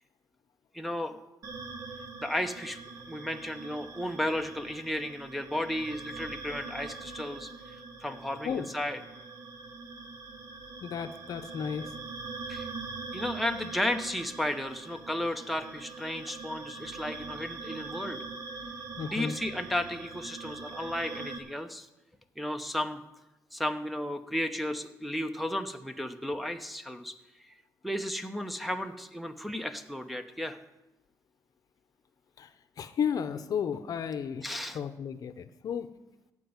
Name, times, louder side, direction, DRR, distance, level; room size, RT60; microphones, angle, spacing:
voice 1, 0.7-1.2 2.2-2.8 3.1-7.5 8.0-9.0 12.5-12.7 13.1-18.2 19.0-21.9 22.4-23.0 23.5-27.1 27.8-30.6 34.4-34.8, left 1 dB, ahead, 5 dB, 0.8 m, -34 dB
sound 1, 1.4-21.4, right 4 dB, 55° right, 1.4 m, -43 dB
voice 2, 10.8-11.9 19.0-19.4 32.4-32.5 32.8-34.5 34.7-35.9, left 7 dB, 60° left, 11 dB, 0.8 m, -33 dB
15.0 x 5.3 x 9.6 m, 0.97 s
cardioid pair, 110°, 7 cm